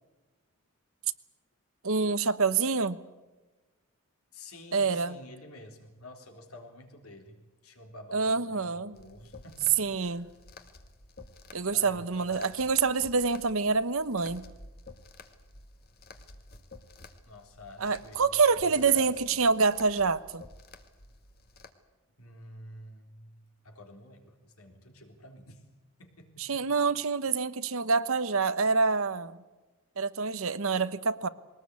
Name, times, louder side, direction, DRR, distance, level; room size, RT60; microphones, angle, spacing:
voice 1, 1.8-3.0 4.7-5.2 8.1-8.9 9.8-10.3 11.5-14.4 17.8-20.4 26.4-29.4 30.0-31.3, right 4 dB, 65° right, 14 dB, 1.0 m, -26 dB
voice 2, 4.3-10.3 11.7-12.7 17.3-19.4 22.2-25.6 26.0-26.8, left 1 dB, 75° left, 4 dB, 3.7 m, -49 dB
sound 1, 8.9-21.7, left 3 dB, 45° left, 1.9 m, -52 dB
21.5 x 19.0 x 8.3 m, 1.2 s
head